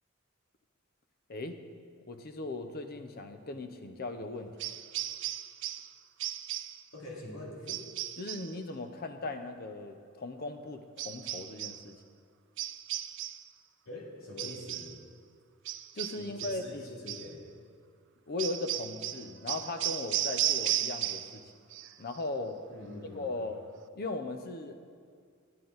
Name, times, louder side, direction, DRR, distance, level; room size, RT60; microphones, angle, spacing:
voice 1, 2.1-4.6 8.2-11.9 15.9-16.8 18.3-21.4 22.0-22.6 23.2-23.6 23.9-24.9, left 2 dB, 45° left, 7 dB, 0.6 m, -38 dB
sound 1, 4.6-5.9 6.2-6.8 7.7-8.5 11.0-11.8 12.6-13.5 14.4-15.0 15.7-16.7 17.1-17.3 18.4-21.4 21.7-22.2, right 14 dB, 60° right, 0.4 m, -35 dB
voice 2, 6.9-7.9 13.8-14.9 16.2-17.4 22.7-23.4, left 1 dB, 70° left, -4 dB, 2.3 m, -44 dB
11.0 x 9.8 x 4.0 m, 2.2 s
head